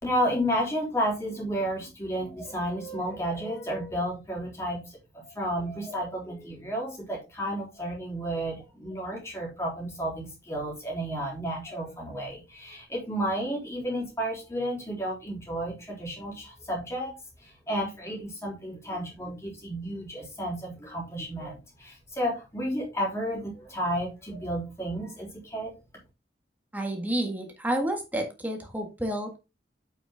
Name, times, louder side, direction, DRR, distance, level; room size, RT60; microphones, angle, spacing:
voice 1, 0.0-17.1 17.4-25.7, equal, 15° left, -2 dB, 3.4 m, -32 dB
voice 2, 26.7-29.4, right 1 dB, 10° right, 3 dB, 1.7 m, -30 dB
8.0 x 5.9 x 3.6 m, 0.27 s
head